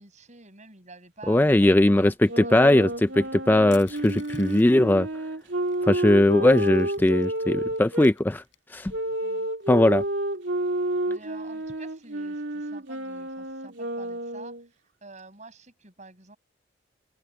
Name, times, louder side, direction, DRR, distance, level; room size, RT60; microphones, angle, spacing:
voice 1, 0.0-2.1 2.4-2.8 9.2-9.5 11.1-14.5 15.0-16.4, right 3 dB, 40° right, 7.8 m, -47 dB
voice 2, 1.3-5.1 5.9-8.4 8.7-8.9 9.7-10.0, left 1 dB, 10° left, 0.3 m, -19 dB
Wind instrument woodwind instrument, 2.2-8.1 8.9-14.7, right 1 dB, 65° right, 3.2 m, -30 dB
Crushing, 3.7-4.9 5.7-5.8 6.1-7.3 7.7-8.8, left 11 dB, 70° left, 7.6 m, -51 dB
open air
head